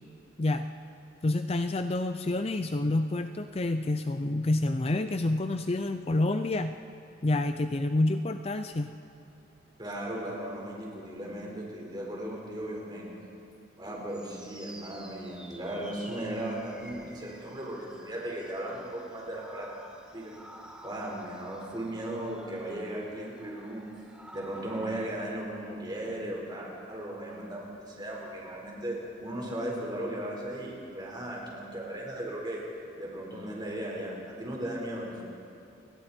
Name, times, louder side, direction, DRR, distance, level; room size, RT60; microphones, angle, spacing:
voice 1, 1.2-6.8 7.2-8.9, left 2 dB, 30° left, 8 dB, 0.5 m, -28 dB
voice 2, 9.8-13.1 13.8-19.7 20.1-20.3 20.8-23.9 24.3-32.6 33.0-35.2, right 1 dB, 25° right, -2 dB, 4.5 m, -36 dB
sound 1, 14.1-25.4, right 1 dB, 5° right, 1.4 m, -50 dB
30.0 x 20.5 x 4.4 m, 2.6 s
head